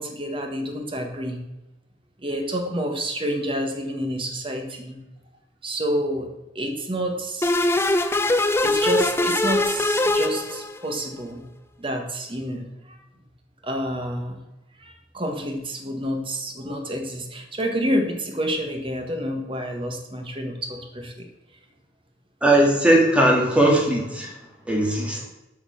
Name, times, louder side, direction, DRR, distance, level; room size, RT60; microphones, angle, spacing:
voice 1, 0.0-1.4 2.2-5.0 5.6-6.3 6.5-7.5 8.6-11.4 11.8-13.0 13.6-14.4 14.8-21.3, equal, 25° right, 3 dB, 1.5 m, -28 dB
sound 1, 7.4-11.0, left 2 dB, 15° left, 0.5 m, -22 dB
voice 2, 22.4-24.4 24.7-25.2, right 1 dB, 5° right, -1 dB, 2.2 m, -19 dB
8.5 x 5.7 x 7.0 m, 0.99 s
head